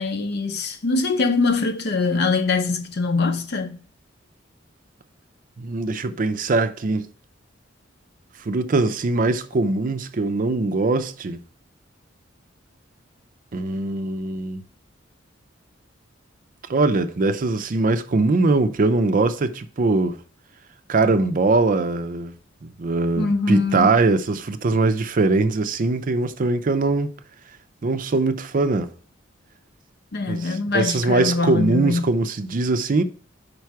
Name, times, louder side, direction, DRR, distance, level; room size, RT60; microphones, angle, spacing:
voice 1, 0.0-3.8 23.2-23.9 30.1-32.1, left 3 dB, 55° left, 0.7 m, -23 dB
voice 2, 5.6-7.1 8.5-11.4 13.5-14.6 16.7-20.2 20.9-22.4 22.6-27.1 27.8-28.9 30.3-33.0, right 3 dB, 45° right, 0.5 m, -21 dB
5.2 x 4.6 x 4.6 m
head